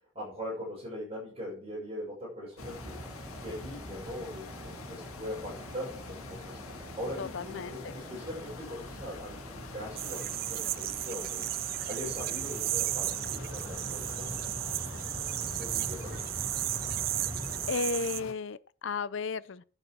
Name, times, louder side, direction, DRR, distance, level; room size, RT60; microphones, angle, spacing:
voice 1, 0.1-3.0 3.4-6.6 6.9-11.4 11.9-14.4 15.6-16.2, equal, 25° right, 6.4 m, -41 dB
sound 1, 2.6-18.3, left 3 dB, 85° left, 1.8 m, -46 dB
sound 2, 2.6-17.7, equal, 10° right, 1.0 m, -44 dB
voice 2, 7.2-8.0 17.7-19.6, left 4 dB, 60° left, 0.5 m, -34 dB
sound 3, 10.0-18.2, right 15 dB, 45° right, 0.4 m, -34 dB
11.0 x 8.2 x 4.6 m
head